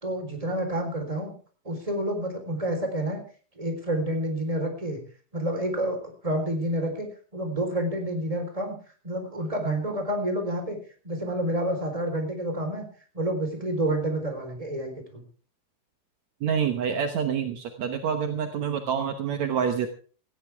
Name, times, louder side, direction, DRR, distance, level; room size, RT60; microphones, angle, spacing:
voice 1, 0.0-1.3 1.6-3.2 3.6-5.0 5.3-8.8 9.0-10.8 11.0-12.8 13.1-15.2, right 1 dB, 10° right, 4 dB, 3.7 m, -29 dB
voice 2, 16.4-19.9, right 7 dB, 75° right, 6 dB, 1.6 m, -27 dB
18.5 x 15.5 x 3.5 m, 0.40 s
omnidirectional pair, 4.8 m